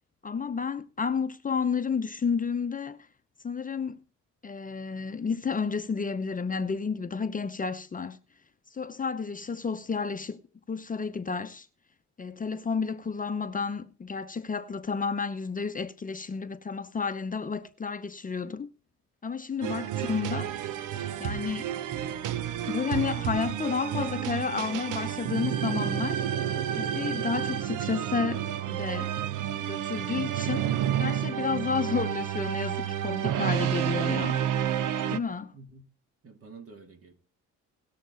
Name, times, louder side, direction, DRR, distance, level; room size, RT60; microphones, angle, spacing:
voice 1, 0.2-3.0 3.4-4.0 4.4-8.2 8.7-10.4 10.7-11.7 12.2-18.7 19.2-20.5 21.2-21.7 22.7-26.2 26.8-29.1 29.6-30.7 31.0-34.4 35.1-35.5, left 5 dB, 25° left, 0.7 m, -31 dB
sound 1, 19.6-35.2, right 10 dB, 85° right, 0.7 m, -30 dB
voice 2, 35.5-35.9 36.2-37.1, right 4 dB, 50° right, 2.4 m, -49 dB
18.5 x 6.6 x 4.0 m
cardioid pair, 90°, 30 cm